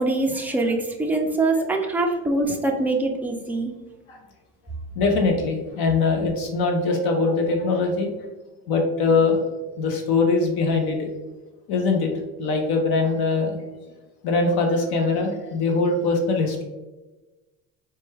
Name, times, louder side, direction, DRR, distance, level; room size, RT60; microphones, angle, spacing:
voice 1, 0.0-3.7, right 2 dB, 5° right, 1 dB, 0.3 m, -23 dB
voice 2, 5.0-8.1 8.7-9.4 9.8-11.1 11.7-12.1 12.4-13.6 14.2-16.6, left 3 dB, 60° left, 3 dB, 0.8 m, -22 dB
4.3 x 2.3 x 3.2 m, 1.1 s
supercardioid pair, 110°, 42 cm